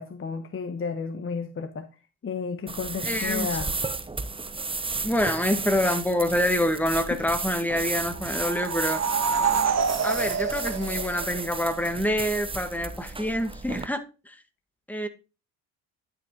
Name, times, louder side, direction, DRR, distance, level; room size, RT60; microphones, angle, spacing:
voice 1, 0.0-1.9 2.2-3.7 7.1-7.2, left 5 dB, 30° left, 1.2 m, -32 dB
sound 1, 2.7-13.9, right 3 dB, 15° right, 0.7 m, -33 dB
voice 2, 3.0-3.5 5.0-9.0 10.0-14.3 14.9-15.1, equal, 5° left, 1.8 m, -26 dB
sound 2, 8.2-11.7, right 6 dB, 40° right, 1.5 m, -27 dB
11.0 x 5.7 x 3.9 m
hypercardioid pair, 55°, 42 cm